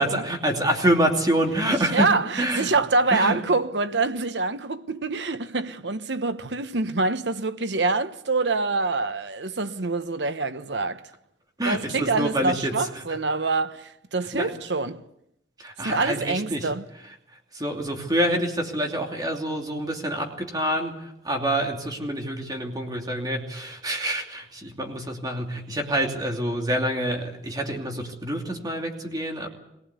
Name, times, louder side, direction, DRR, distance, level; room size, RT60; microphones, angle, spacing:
voice 1, 0.0-2.1 2.4-2.7 3.1-3.4 11.6-12.7 14.3-14.5 15.6-16.7 17.5-20.9 21.2-29.5, right 1 dB, 20° right, 2.8 m, -26 dB
voice 2, 1.7-11.1 11.6-15.0 15.8-16.9, right 3 dB, 75° right, 1.1 m, -26 dB
22.0 x 19.0 x 8.3 m
head